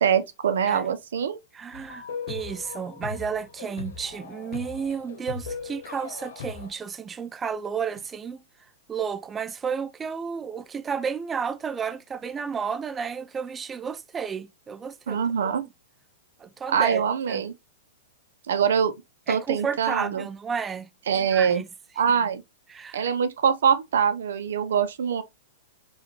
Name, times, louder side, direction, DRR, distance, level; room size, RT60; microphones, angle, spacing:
voice 1, 0.0-1.4 15.1-15.6 16.7-17.5 18.5-18.9 19.3-20.3 21.1-21.6 22.0-22.4 22.9-25.2, right 7 dB, 75° right, 0.7 m, -23 dB
voice 2, 1.5-8.4 8.9-15.5 16.4-17.0 17.3-17.4 19.3-20.9 21.1-21.6 22.7-23.1, right 6 dB, 20° right, 0.6 m, -32 dB
sound 1, 1.7-6.7, left 5 dB, 70° left, 0.9 m, -38 dB
4.8 x 2.5 x 3.1 m
hypercardioid pair, 120°, 0 cm